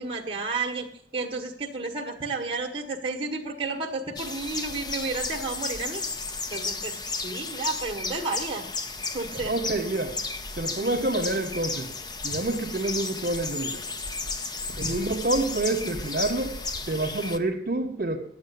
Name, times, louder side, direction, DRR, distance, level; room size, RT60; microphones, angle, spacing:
voice 1, 0.0-6.0 6.5-8.6 9.1-9.5, right 3 dB, 30° right, 0 dB, 1.5 m, -32 dB
sound 1, 4.2-17.4, left 3 dB, 25° left, 0.6 m, -34 dB
voice 2, 9.3-10.2 10.6-11.9 12.2-13.8 14.8-16.6 16.9-18.2, right 2 dB, 55° right, 2 dB, 1.4 m, -27 dB
10.5 x 7.5 x 9.5 m, 0.67 s
head